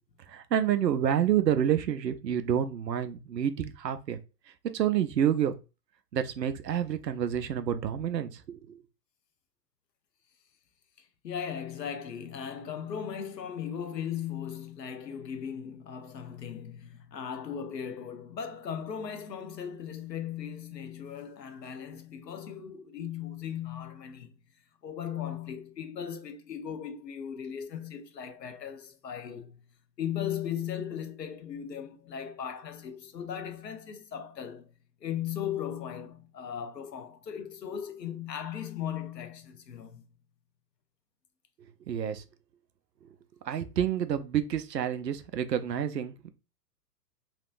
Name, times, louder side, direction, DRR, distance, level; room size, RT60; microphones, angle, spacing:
voice 1, 0.3-4.2 4.7-5.6 6.1-8.8 41.9-42.2 43.5-46.3, right 9 dB, 80° right, 0.6 m, -28 dB
voice 2, 11.2-24.3 24.8-29.6 30.0-34.7 35.0-40.0, left 8 dB, 80° left, 0.8 m, -37 dB
3.3 x 3.1 x 2.4 m
figure-of-eight pair, 110°, 49 cm